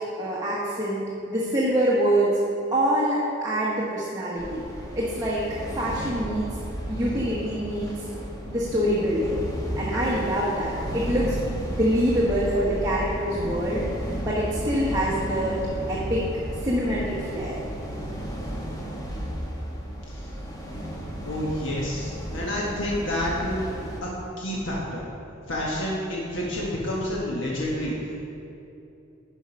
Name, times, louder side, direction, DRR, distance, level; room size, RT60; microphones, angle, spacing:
voice 1, 0.2-2.4 2.7-4.6 4.9-5.4 5.7-6.5 6.9-8.1 8.5-9.4 9.8-11.4 11.7-13.9 14.2-15.6 15.9-16.2 16.6-17.6, equal, 20° right, -7 dB, 1.2 m, -25 dB
sound 1, 4.4-24.0, equal, 20° left, 1.0 m, -33 dB
voice 2, 21.2-23.6 24.0-24.1 24.4-25.1 25.5-28.2, left 1 dB, 70° left, -4 dB, 1.4 m, -29 dB
10.5 x 5.2 x 5.4 m, 2.8 s
head